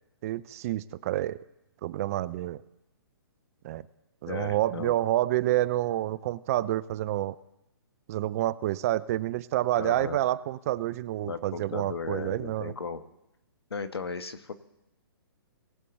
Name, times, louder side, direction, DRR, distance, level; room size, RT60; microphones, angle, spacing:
voice 1, 0.2-1.4 1.8-2.6 3.6-3.8 4.2-7.4 8.1-12.7, right 14 dB, 35° right, 18 dB, 0.4 m, -28 dB
voice 2, 4.3-4.9 9.8-10.2 11.2-13.0 13.7-14.5, left 5 dB, 85° left, 10 dB, 1.2 m, -36 dB
21.0 x 8.3 x 3.3 m, 0.88 s
hypercardioid pair, 135°, 13 cm